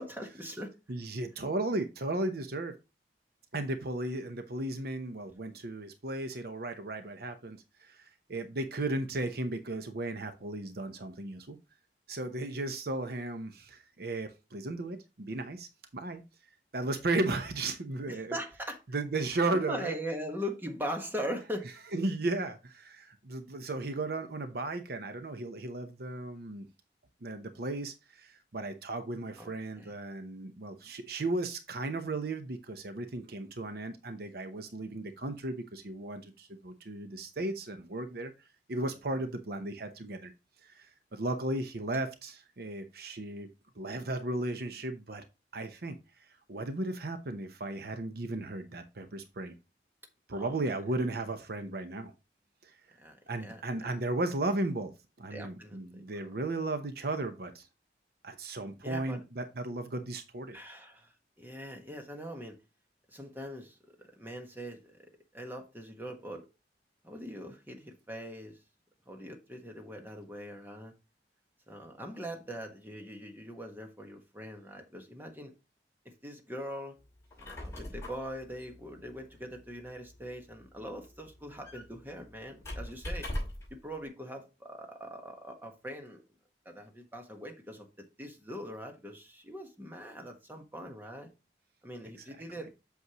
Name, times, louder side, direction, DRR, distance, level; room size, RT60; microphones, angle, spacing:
voice 1, 0.0-0.7 18.1-18.8 19.5-21.7 29.4-29.9 50.3-50.5 53.0-53.9 55.3-56.3 58.8-59.2 60.5-62.5 63.1-63.8 64.2-65.0 65.3-66.4 67.0-68.6 69.1-70.9 71.7-75.5 76.0-77.0 77.4-83.3 83.8-86.2 86.6-87.9 88.2-91.3 91.8-92.7, equal, 10° right, 1.4 m, -41 dB
voice 2, 0.9-2.8 3.5-11.6 12.1-16.2 16.7-18.4 18.9-19.9 21.9-26.7 27.2-40.3 40.6-43.5 43.8-45.2 45.5-49.6 50.3-52.1 52.6-52.8 53.3-54.9 55.2-57.7 58.2-60.6 92.2-92.4, right 2 dB, 60° right, 0.8 m, -35 dB
Squeak, 77.2-83.8, left 1 dB, 15° left, 5.4 m, -42 dB
8.2 x 6.4 x 3.0 m
head